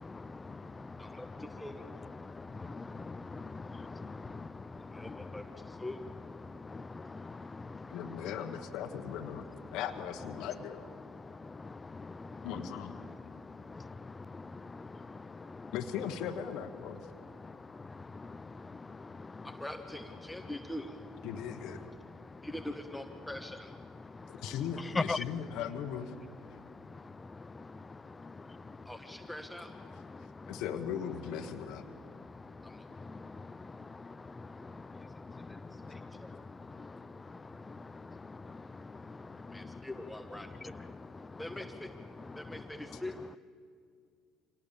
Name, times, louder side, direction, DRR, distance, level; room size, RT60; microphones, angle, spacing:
voice 1, 0.0-9.8 10.2-16.4 16.7-19.7 20.2-20.6 21.3-22.7 23.2-23.3 23.7-25.6 26.1-43.4, left 3 dB, 20° left, 16 dB, 0.6 m, -45 dB
voice 2, 1.0-1.8 4.9-6.0 19.4-21.0 22.4-23.7 28.8-29.7 32.6-32.8 34.9-35.1 35.5-36.4 39.5-40.7 41.4-41.9 42.4-43.2, left 1 dB, 5° left, 5 dB, 1.3 m, -43 dB
voice 3, 7.9-9.5 9.7-10.9 12.4-13.0 15.7-17.0 21.2-21.8 24.4-26.1 30.5-31.8, left 8 dB, 70° left, 6 dB, 1.3 m, -38 dB
25.0 x 18.0 x 7.3 m, 2.3 s
supercardioid pair, 75°, 0 cm